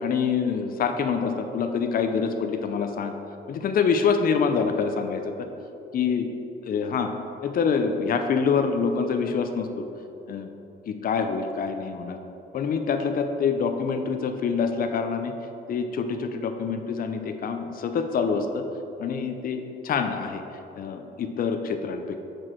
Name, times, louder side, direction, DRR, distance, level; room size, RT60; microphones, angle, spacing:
voice 1, 0.0-3.1 3.5-5.3 5.9-6.3 6.6-7.1 7.4-9.9 10.3-10.5 10.9-12.2 12.5-15.3 15.7-18.6 19.0-20.4 20.7-22.2, left 5 dB, 45° left, 6 dB, 0.5 m, -26 dB
6.1 x 4.7 x 4.4 m, 2.9 s
cardioid pair, 90°, 20 cm